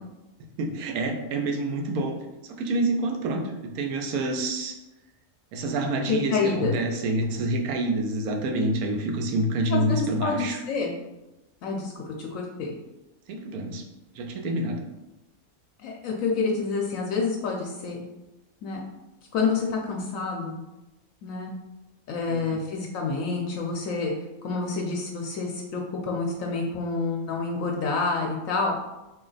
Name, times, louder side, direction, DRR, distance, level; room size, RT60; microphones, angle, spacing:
voice 1, 0.6-2.1 2.4-4.7 5.5-10.6 13.3-13.8 14.1-14.8 22.3-22.4, right 2 dB, 90° right, 3 dB, 1.1 m, -27 dB
voice 2, 6.1-6.7 9.7-11.0 11.6-12.7 15.8-18.0 18.6-18.8 19.3-20.6 21.2-21.5 22.1-24.1 24.4-28.8, left 4 dB, 70° left, 0 dB, 0.9 m, -28 dB
3.0 x 2.8 x 3.9 m, 0.99 s
omnidirectional pair, 1.5 m